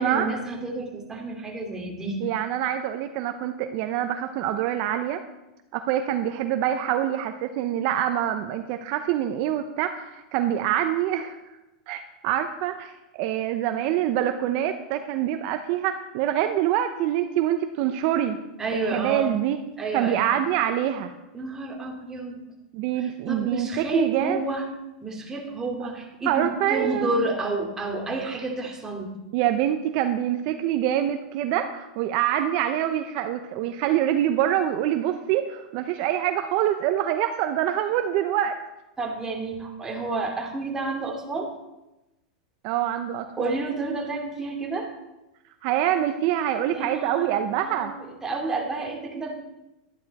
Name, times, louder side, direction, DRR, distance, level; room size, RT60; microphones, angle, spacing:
voice 1, 0.0-2.2 18.6-19.3 19.8-20.3 21.3-22.4 23.0-24.7 25.0-29.2 39.0-41.5 43.4-44.9 46.7-47.9 48.2-49.3, right 3 dB, 15° right, 0 dB, 2.5 m, -30 dB
voice 2, 2.2-5.2 5.7-11.4 11.9-18.4 18.7-19.6 19.9-21.1 22.7-24.4 26.3-27.1 29.3-38.6 42.6-43.6 45.6-47.9, right 11 dB, 55° right, 7 dB, 0.8 m, -25 dB
12.0 x 10.5 x 4.2 m, 0.97 s
supercardioid pair, 125°, 4 cm